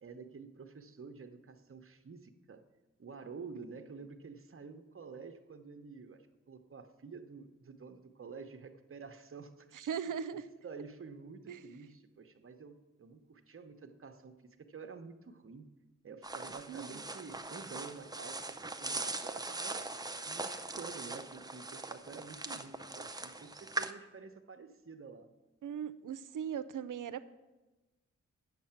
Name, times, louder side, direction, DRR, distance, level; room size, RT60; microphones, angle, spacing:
voice 1, 0.0-2.6 3.0-10.0 10.6-14.3 14.6-15.7 16.0-19.9 20.3-25.3, right 5 dB, 45° right, 7 dB, 0.9 m, -49 dB
voice 2, 9.7-10.5 11.5-11.6 16.7-17.0 25.6-27.3, right 8 dB, 80° right, 13 dB, 0.5 m, -39 dB
sound 1, 16.2-23.9, right 2 dB, 15° right, 0.5 m, -41 dB
8.5 x 7.5 x 5.8 m, 1.1 s
cardioid pair, 60°, 31 cm